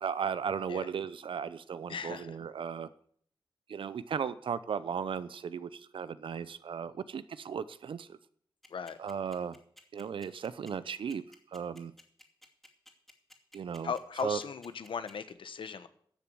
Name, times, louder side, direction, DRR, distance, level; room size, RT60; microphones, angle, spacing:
voice 1, 0.0-2.9 3.7-8.2 9.0-9.6 9.9-11.2 11.5-11.9 13.5-13.9 14.2-14.4, right 7 dB, 80° right, 15 dB, 0.6 m, -36 dB
voice 2, 1.9-2.3 8.7-9.0 13.8-15.9, left 6 dB, 80° left, 12 dB, 1.0 m, -37 dB
sound 1, 8.6-15.3, equal, 5° left, 2.6 m, -55 dB
11.5 x 7.1 x 7.8 m, 0.62 s
wide cardioid pair, 80°, 9 cm